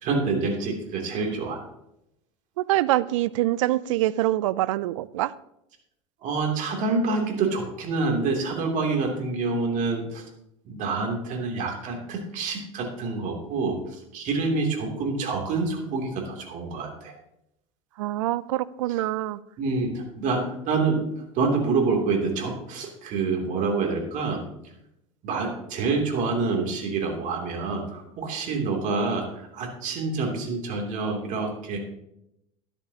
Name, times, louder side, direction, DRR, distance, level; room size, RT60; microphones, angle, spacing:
voice 1, 0.0-1.6 6.2-10.2 10.6-13.8 14.1-17.1 19.6-21.0 21.3-24.4 25.2-31.8, right 4 dB, 50° right, 2 dB, 2.9 m, -27 dB
voice 2, 2.6-5.3 18.0-19.4, right 15 dB, 75° right, 19 dB, 0.5 m, -25 dB
12.5 x 11.0 x 2.9 m, 0.81 s
hypercardioid pair, 90°, 16 cm